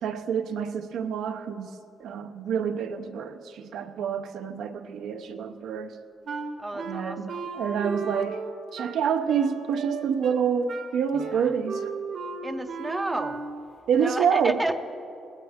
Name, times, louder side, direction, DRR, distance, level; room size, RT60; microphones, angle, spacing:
voice 1, 0.0-1.7 2.0-6.0 6.8-8.4 8.7-11.9 13.9-14.6, right 7 dB, 80° right, 7 dB, 0.7 m, -27 dB
Wind instrument woodwind instrument, 6.3-13.7, right 4 dB, 60° right, 1.2 m, -35 dB
voice 2, 6.6-7.5 11.1-11.5 12.4-13.4 14.0-14.8, right 1 dB, 10° right, 9 dB, 0.6 m, -31 dB
19.0 x 17.5 x 3.6 m, 2.7 s
cardioid pair, 140°, 0 cm